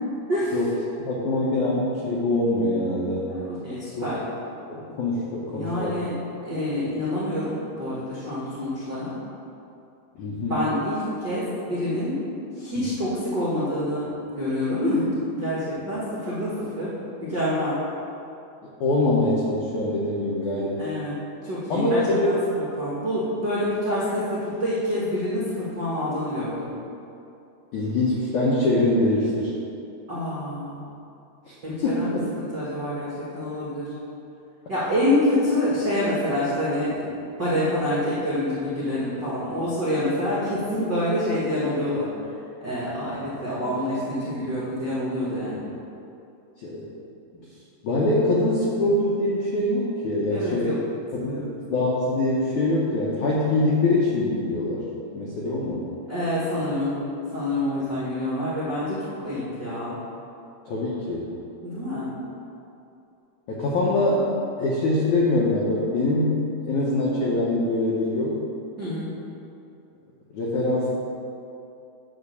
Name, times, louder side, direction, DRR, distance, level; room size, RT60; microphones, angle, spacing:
voice 1, 1.0-3.3 4.0-4.1 4.7-6.0 10.2-10.6 12.8-12.9 18.8-20.8 21.7-22.3 27.7-29.5 31.5-31.6 31.8-32.2 46.6-46.8 47.8-50.7 51.1-54.8 55.1-55.8 60.7-61.3 63.5-64.3 64.6-68.4 70.3-70.9, left 2 dB, 85° left, -5 dB, 1.7 m, -24 dB
voice 2, 3.3-4.2 5.5-6.1 6.4-9.2 10.5-12.2 12.6-15.0 15.3-16.9 17.2-17.8 20.8-21.1 21.4-26.7 30.1-30.8 31.6-33.9 34.7-37.1 37.4-42.1 42.6-45.6 50.3-50.8 51.2-51.5 56.1-57.0 57.3-60.0 61.6-62.1 68.8-69.1, left 1 dB, 80° right, -9 dB, 0.9 m, -27 dB
10.0 x 4.1 x 6.8 m, 2.7 s
omnidirectional pair, 5.0 m